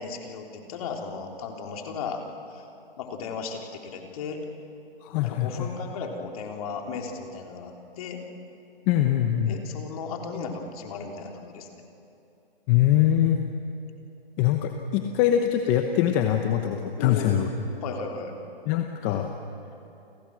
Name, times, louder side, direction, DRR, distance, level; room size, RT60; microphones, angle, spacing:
voice 1, 0.0-2.2 2.5-2.7 3.0-4.4 5.1-8.2 9.5-11.7 17.0-17.4 17.8-18.3, left 5 dB, 35° left, 2 dB, 3.5 m, -35 dB
voice 2, 5.0-5.7 8.9-9.6 12.7-13.4 14.4-17.5 18.7-19.3, left 11 dB, 20° left, 5 dB, 1.0 m, -23 dB
30.0 x 26.5 x 6.4 m, 2.8 s
hypercardioid pair, 150°, 30 cm